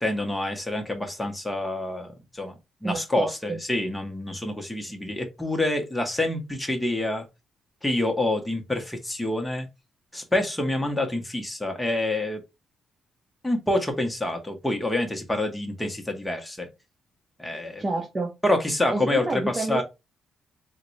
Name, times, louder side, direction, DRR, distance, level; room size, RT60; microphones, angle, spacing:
voice 1, 0.0-2.5 2.8-7.2 7.8-9.7 10.1-12.4 13.4-16.7 17.4-17.8 18.4-19.8, left 1 dB, 5° left, 0.8 m, -27 dB
voice 2, 2.8-3.6 17.8-18.3 18.9-19.8, right 3 dB, 25° right, 0.8 m, -29 dB
3.6 x 2.1 x 3.1 m
cardioid pair, 90°, 0 cm